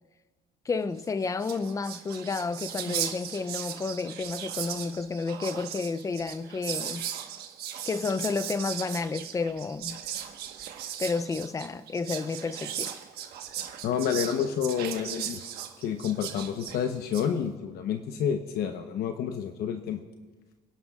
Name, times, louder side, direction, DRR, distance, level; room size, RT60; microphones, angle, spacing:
voice 1, 0.7-7.1 7.9-10.0 11.0-13.0, left 4 dB, 20° left, 0.4 m, -31 dB
Whispering, 1.1-1.2 1.3-17.3, right 10 dB, 70° right, 1.3 m, -37 dB
voice 2, 13.8-15.5 15.8-20.0, left 8 dB, 70° left, 0.9 m, -29 dB
30.0 x 11.5 x 2.4 m
cardioid pair, 125°, 17 cm